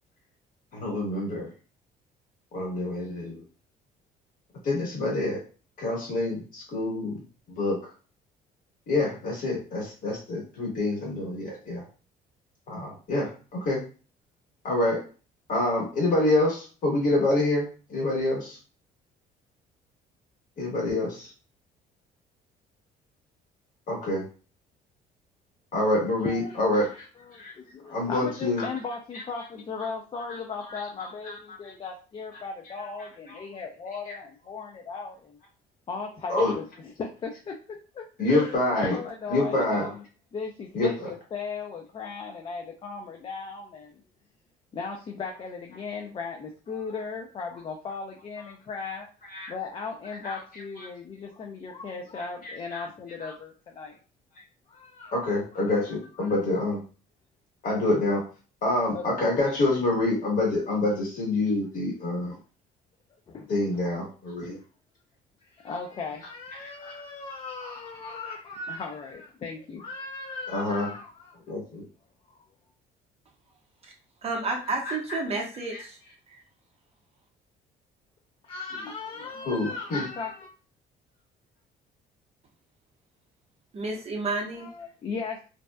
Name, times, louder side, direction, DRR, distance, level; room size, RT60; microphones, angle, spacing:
voice 1, 0.7-1.5 2.5-3.4 4.6-5.4 5.8-7.2 7.5-7.8 8.9-11.8 12.7-13.8 14.6-15.0 15.5-18.6 20.6-21.3 23.9-24.2 25.7-26.9 27.4-27.5 27.9-28.7 30.7-30.8 31.2-31.4 31.6-31.7 34.1-34.2 36.3-36.5 38.2-39.0 39.3-39.9 40.7-41.1 49.3-49.5 50.2-50.4 50.8-50.9 52.4-52.8 53.2-53.3 55.1-56.8 57.6-58.2 58.6-62.4 63.5-64.6 70.5-70.9 71.5-71.8 74.8-75.2 75.7-75.8 79.4-80.0, left 2 dB, 55° left, -2 dB, 1.4 m, -27 dB
voice 2, 26.2-35.4 35.9-40.0 40.3-44.0 44.7-49.1 49.5-54.0 54.7-55.2 55.6-55.7 56.2-56.3 58.9-59.2 63.3-63.8 64.4-64.6 65.4-71.4 72.3-72.4 78.4-80.5 84.5-85.5, left 4 dB, 30° left, 1 dB, 0.4 m, -37 dB
voice 3, 74.2-76.0 76.3-76.4 83.7-84.7, right 3 dB, 35° right, 0 dB, 0.7 m, -31 dB
2.6 x 2.1 x 2.2 m, 0.37 s
cardioid pair, 110°, 17 cm